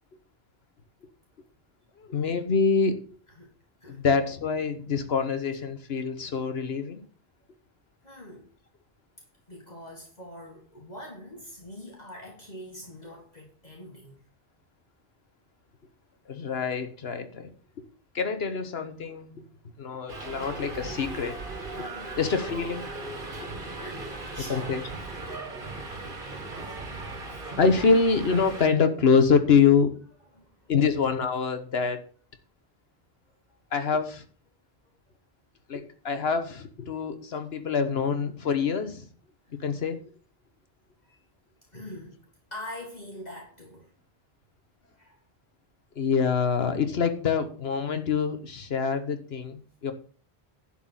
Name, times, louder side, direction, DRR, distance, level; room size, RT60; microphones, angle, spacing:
voice 1, 2.0-3.0 3.9-7.1 16.3-17.5 17.8-17.9 18.1-19.4 19.8-21.9 22.1-22.9 23.4-23.6 24.5-24.8 25.3-25.6 26.7-26.8 27.6-29.9 30.7-32.0 33.7-34.2 35.7-39.1 39.6-40.0 46.0-49.9, left 5 dB, 75° left, 1.4 m, -25 dB
voice 2, 8.0-8.5 9.5-14.2 21.8-22.2 23.8-24.7 26.0-27.2 30.3-30.7 33.3-33.6 41.0-41.2 41.7-42.2 42.5-43.9 44.8-45.2, left 1 dB, 40° left, 2.6 m, -44 dB
Subway metro underground, 20.1-28.7, right 3 dB, 55° right, 1.8 m, -38 dB
11.5 x 4.7 x 7.4 m
omnidirectional pair, 1.0 m